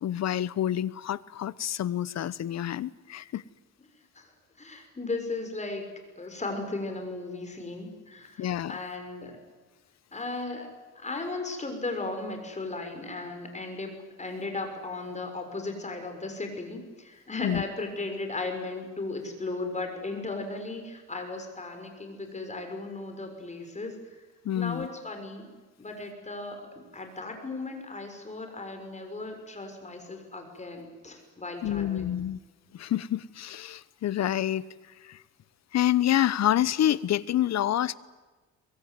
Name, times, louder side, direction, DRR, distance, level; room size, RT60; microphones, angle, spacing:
voice 1, 0.0-3.4 8.4-8.8 17.4-17.6 24.4-24.9 31.6-32.4 32.7-34.7 35.0-35.2 35.7-37.9, left 11 dB, 60° left, 18 dB, 0.9 m, -27 dB
voice 2, 4.6-5.9 6.2-9.4 10.1-10.7 10.9-13.9 14.2-24.0 24.5-25.5 25.8-26.6 26.9-32.2, left 3 dB, 25° left, 5 dB, 6.6 m, -36 dB
23.5 x 22.0 x 9.6 m, 1.3 s
cardioid pair, 90°, 30 cm